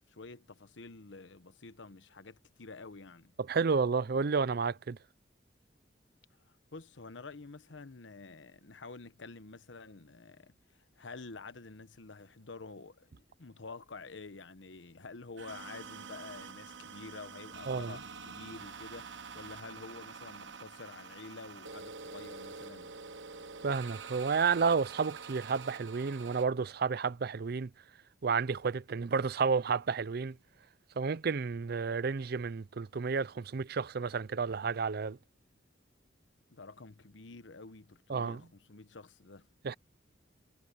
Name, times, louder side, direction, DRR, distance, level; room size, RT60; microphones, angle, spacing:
voice 1, 0.1-3.3 6.5-22.9 36.5-39.5, left 3 dB, 80° left, 1.1 m, -49 dB
voice 2, 3.4-5.0 17.7-18.0 23.6-27.7 28.2-30.4 31.0-35.2 38.1-38.4 39.6-39.8, right 5 dB, 55° right, 0.5 m, -31 dB
sound 1, 15.4-26.5, right 5 dB, 80° right, 1.2 m, -47 dB
head